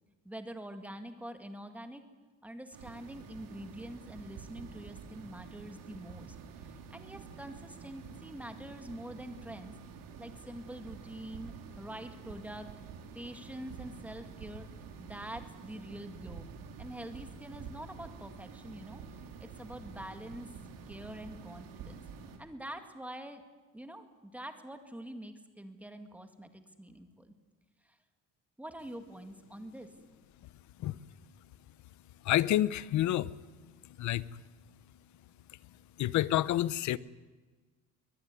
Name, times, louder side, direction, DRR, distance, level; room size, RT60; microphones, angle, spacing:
voice 1, 0.2-2.0 2.4-9.7 10.2-12.7 13.1-14.7 15.0-16.5 16.8-19.0 19.4-20.5 20.9-22.0 22.4-23.4 23.7-27.3 27.8-28.0 28.6-29.9, right 1 dB, 5° right, 7 dB, 2.0 m, -45 dB
sound 1, 2.7-22.4, right 6 dB, 85° right, 3.5 m, -48 dB
voice 2, 32.2-33.3 33.8-34.3 35.5-35.6 36.0-37.0, left 14 dB, 60° left, 18 dB, 0.8 m, -29 dB
22.5 x 20.5 x 9.7 m, 1.3 s
cardioid pair, 160°, 33 cm